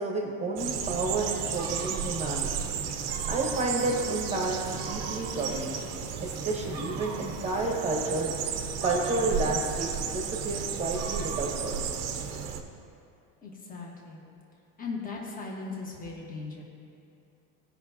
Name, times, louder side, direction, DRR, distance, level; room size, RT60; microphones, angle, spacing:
voice 1, 0.0-2.7 3.3-5.8 6.2-8.3 8.8-12.0, right 2 dB, 15° right, -1 dB, 1.0 m, -31 dB
sound 1, 0.6-12.6, right 7 dB, 40° right, 0.7 m, -33 dB
voice 2, 13.4-14.2 14.8-16.6, left 4 dB, 20° left, -2 dB, 1.4 m, -38 dB
17.0 x 5.8 x 2.8 m, 2.6 s
cardioid pair, 145°, 39 cm